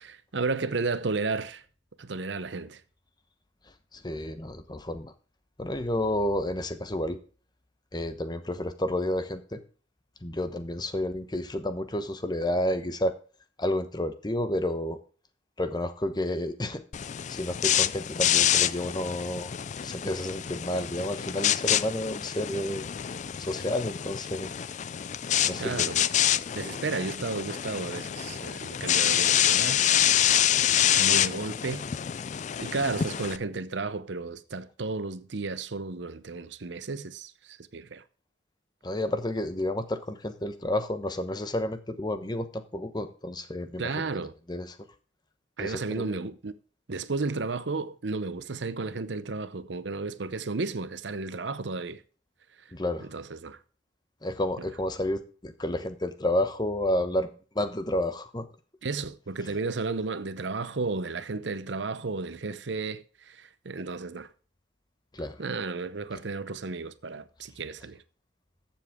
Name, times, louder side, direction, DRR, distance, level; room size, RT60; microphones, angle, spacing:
voice 1, 0.0-1.6 2.0-2.8 25.5-26.1 26.5-29.9 30.6-31.9 32.6-38.0 43.8-44.3 45.6-46.5 46.9-52.0 52.6-52.7 53.0-53.6 54.6-54.7 58.8-64.3 65.4-68.0, right 3 dB, 70° right, 0.8 m, -33 dB
voice 2, 3.9-5.1 5.6-7.2 7.9-9.6 10.2-13.1 13.6-15.0 15.6-16.8 17.3-19.5 19.8-22.8 23.4-24.5 25.4-25.9 38.8-43.9 44.5-44.7 45.6-46.1 52.7-53.1 54.2-58.4 65.1-65.4, left 1 dB, 25° left, 1.0 m, -30 dB
sound 1, 16.9-33.4, left 10 dB, 40° left, 0.4 m, -27 dB
14.0 x 7.3 x 3.6 m
head